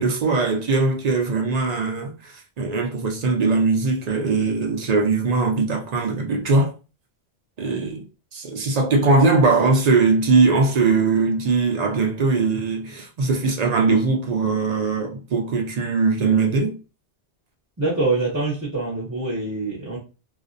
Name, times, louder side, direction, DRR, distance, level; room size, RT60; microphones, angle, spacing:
voice 1, 0.0-6.7 7.6-16.8, right 3 dB, 60° right, 0.4 m, -20 dB
voice 2, 17.8-20.0, right 3 dB, 15° right, 0.6 m, -24 dB
2.4 x 2.1 x 2.5 m
omnidirectional pair, 1.1 m